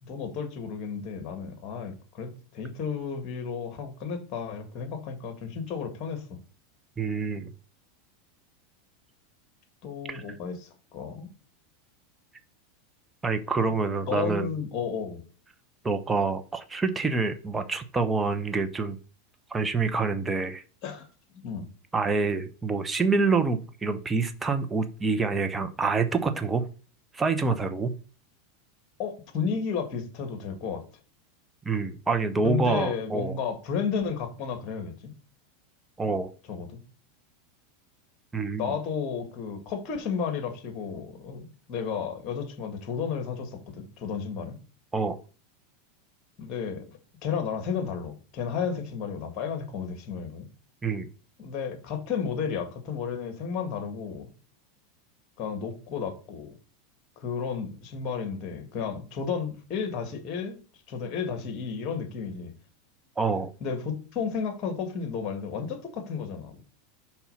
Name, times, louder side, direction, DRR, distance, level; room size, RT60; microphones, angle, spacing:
voice 1, 0.0-6.4 9.8-11.3 14.0-15.2 20.8-21.1 21.3-21.7 29.0-30.8 32.4-35.1 36.5-36.8 38.6-44.6 46.4-50.5 51.4-54.3 55.4-56.5 57.2-60.6 60.9-62.5 63.6-66.6, left 6 dB, 45° left, 2.0 m, -33 dB
voice 2, 7.0-7.5 10.1-10.2 13.2-14.5 15.8-19.0 19.5-20.6 21.9-26.6 27.1-27.9 31.6-33.4 36.0-36.3 38.3-38.7 44.9-45.2 50.8-51.1 63.2-63.5, right 4 dB, 15° right, 0.8 m, -27 dB
5.6 x 4.3 x 5.5 m
hypercardioid pair, 95°, 0 cm